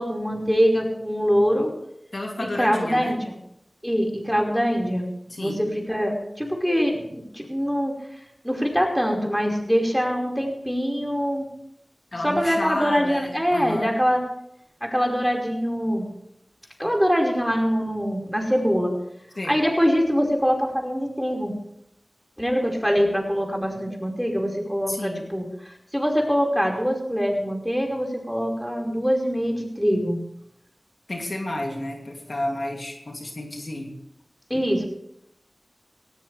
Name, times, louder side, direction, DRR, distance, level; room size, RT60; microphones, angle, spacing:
voice 1, 0.0-1.7 2.6-3.3 3.8-5.1 5.4-7.9 8.4-11.5 12.2-14.2 14.8-16.1 16.8-18.9 19.5-21.5 22.4-25.4 25.9-30.2 34.5-34.9, equal, ahead, 1 dB, 5.1 m, -23 dB
voice 2, 2.1-3.2 5.3-5.6 12.1-14.0 19.3-19.6 24.9-25.3 31.1-34.0, left 1 dB, 65° left, 1 dB, 2.8 m, -31 dB
18.5 x 17.0 x 3.4 m, 0.77 s
wide cardioid pair, 45°, 0 cm